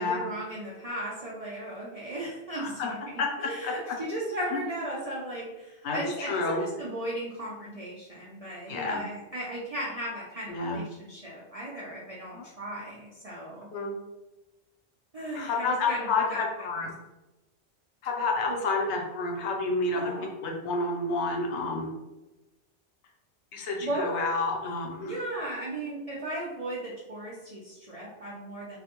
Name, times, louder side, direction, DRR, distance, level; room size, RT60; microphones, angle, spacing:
voice 1, 0.0-13.7 15.1-16.4 18.5-18.6 19.9-20.3 23.8-24.3 25.0-28.8, right 1 dB, 60° right, -6 dB, 0.4 m, -36 dB
voice 2, 5.8-6.6 8.7-9.0 10.5-10.8 12.3-12.5 13.7-13.9 15.3-16.9 18.0-21.9 23.5-25.2, left 3 dB, 80° left, 1 dB, 0.9 m, -29 dB
2.4 x 2.1 x 2.8 m, 1.0 s
omnidirectional pair, 1.1 m